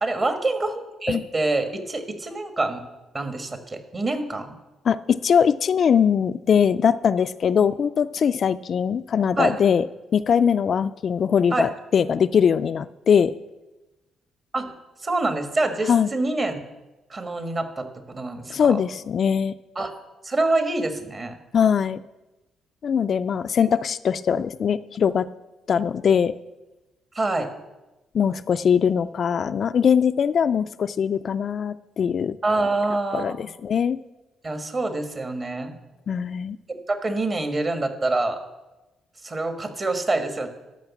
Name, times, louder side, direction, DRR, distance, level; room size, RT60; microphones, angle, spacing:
voice 1, 0.0-2.8 3.1-4.5 9.4-9.5 11.5-11.7 14.5-14.7 15.0-16.6 17.1-18.8 19.7-20.0 20.2-21.4 27.1-27.5 32.4-33.5 34.4-35.7 36.7-38.4 39.2-40.5, right 2 dB, 35° right, 7 dB, 1.5 m, -26 dB
voice 2, 4.9-9.8 10.1-13.3 15.9-16.1 18.5-19.5 21.5-22.0 22.8-25.3 25.7-26.3 28.1-32.4 33.1-34.0 36.1-36.6, left 7 dB, 55° left, 12 dB, 0.3 m, -21 dB
12.5 x 5.7 x 7.2 m, 1.1 s
cardioid pair, 90°, 0 cm